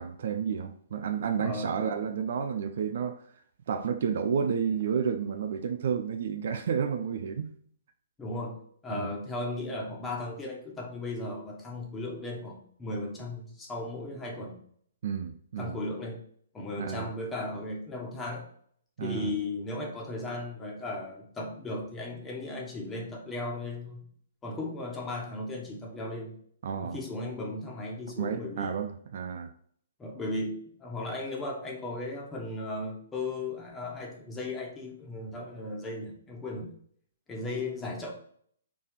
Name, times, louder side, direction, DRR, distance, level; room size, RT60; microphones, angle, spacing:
voice 1, 0.0-3.2 3.7-7.5 8.9-9.1 15.0-15.8 16.8-17.1 19.0-19.3 26.6-27.0 28.2-29.5, right 7 dB, 55° right, 0.5 m, -31 dB
voice 2, 1.4-1.7 8.2-8.5 8.8-14.6 15.6-16.2 16.5-18.5 19.0-24.0 24.4-26.4 26.8-28.8 30.0-36.7 37.3-38.1, left 2 dB, 15° left, 1.5 m, -36 dB
4.8 x 4.0 x 5.6 m
figure-of-eight pair, 120°, 0 cm